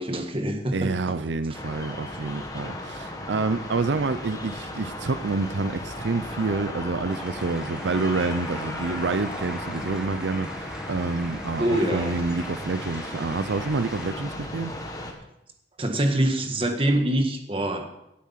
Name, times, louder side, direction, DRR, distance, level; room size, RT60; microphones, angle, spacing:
voice 1, 0.0-1.2 11.6-12.2 15.8-17.9, right 1 dB, 30° right, 5 dB, 1.6 m, -25 dB
voice 2, 0.7-14.7, right 3 dB, 80° right, 12 dB, 0.6 m, -28 dB
sound 1, 1.5-15.1, left 1 dB, 20° left, 1.6 m, -36 dB
sound 2, 7.1-14.1, equal, 5° right, 1.6 m, -42 dB
17.0 x 8.5 x 5.8 m, 0.88 s
head